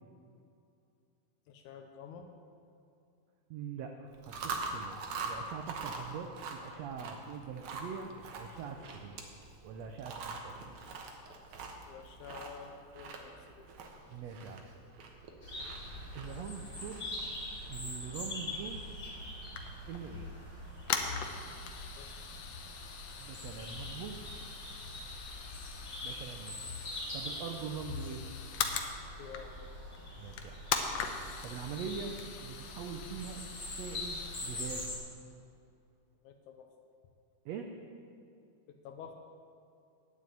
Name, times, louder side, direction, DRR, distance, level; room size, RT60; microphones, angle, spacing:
voice 1, 1.5-2.3 5.8-5.9 11.9-13.7 22.0-22.2 29.2-29.6 36.2-36.7 38.7-39.1, left 6 dB, 85° left, 4 dB, 2.2 m, -49 dB
voice 2, 3.5-5.0 5.2-9.2 9.6-10.6 14.1-14.7 16.1-17.1 17.7-18.8 19.9-20.3 23.2-24.2 26.0-26.7 27.1-28.2 30.2-30.6 31.4-34.9 37.5-37.7, right 6 dB, 75° right, 4 dB, 1.6 m, -43 dB
Chewing mastication, 4.1-17.3, right 3 dB, 55° right, 1.6 m, -44 dB
sound 1, 15.4-35.0, left 1 dB, 20° left, 2.5 m, -43 dB
sound 2, 19.4-20.1 20.6-28.9 29.3-29.7 29.9-30.0 30.3-34.9, left 7 dB, 70° left, 1.8 m, -41 dB
9.7 x 7.7 x 8.6 m, 2.6 s
omnidirectional pair, 3.4 m